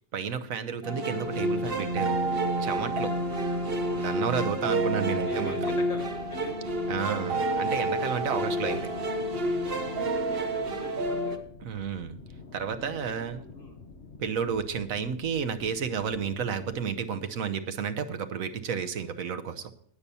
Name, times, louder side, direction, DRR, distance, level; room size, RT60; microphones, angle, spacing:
voice 1, 0.1-2.2 2.6-3.1 4.0-5.7 6.9-8.9 11.6-12.2 12.5-13.4 14.2-19.7, right 7 dB, 85° right, 9 dB, 1.3 m, -31 dB
sound 1, 0.8-11.4, right 1 dB, 45° right, 1.2 m, -29 dB
sound 2, 1.2-16.8, left 4 dB, 55° left, 1.5 m, -48 dB
voice 2, 4.1-4.5 5.1-6.7 10.1-11.4 12.8-13.1 13.5-13.8, left 2 dB, 80° left, 1 dB, 2.7 m, -44 dB
18.5 x 6.9 x 4.2 m, 0.63 s
omnidirectional pair, 1.4 m